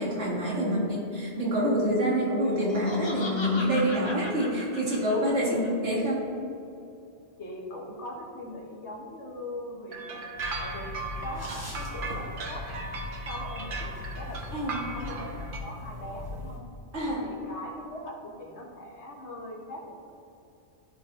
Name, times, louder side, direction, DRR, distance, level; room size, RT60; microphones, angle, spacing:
voice 1, 0.0-6.3 14.5-14.8 16.9-17.3, equal, 80° right, -6 dB, 2.1 m, -27 dB
voice 2, 0.5-1.0 5.4-5.8 7.4-10.2 10.6-12.7 13.2-13.9 14.2-16.6 17.2-20.1, left 1 dB, 70° left, 0 dB, 1.4 m, -40 dB
Laughter, 2.4-5.7, left 1 dB, 25° left, 0.9 m, -38 dB
sound 1, 9.9-15.6, right 3 dB, 50° right, 0.9 m, -37 dB
sound 2, 10.4-16.6, left 2 dB, 15° right, 1.1 m, -39 dB
13.0 x 4.4 x 2.6 m, 2.7 s
omnidirectional pair, 1.2 m